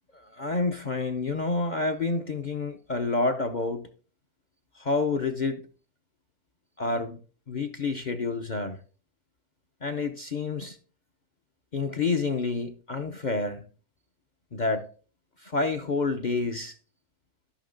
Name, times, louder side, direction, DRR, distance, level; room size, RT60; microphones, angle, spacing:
voice 1, 0.2-3.9 4.7-5.7 6.8-7.2 7.5-8.8 9.8-10.8 11.7-13.7 14.5-14.9 15.4-16.8, left 3 dB, 45° left, 0.6 m, -28 dB
13.0 x 5.8 x 3.8 m
omnidirectional pair, 1.6 m